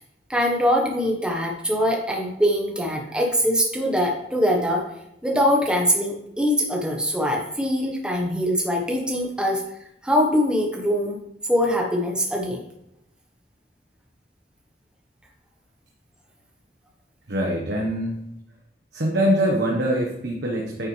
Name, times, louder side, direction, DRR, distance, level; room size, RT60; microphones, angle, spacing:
voice 1, 0.3-4.9 5.2-9.6 10.0-12.6, equal, 5° right, 0 dB, 1.1 m, -23 dB
voice 2, 17.3-18.1 18.9-20.9, right 1 dB, 75° right, -1 dB, 1.2 m, -23 dB
9.3 x 5.9 x 3.2 m, 0.82 s
head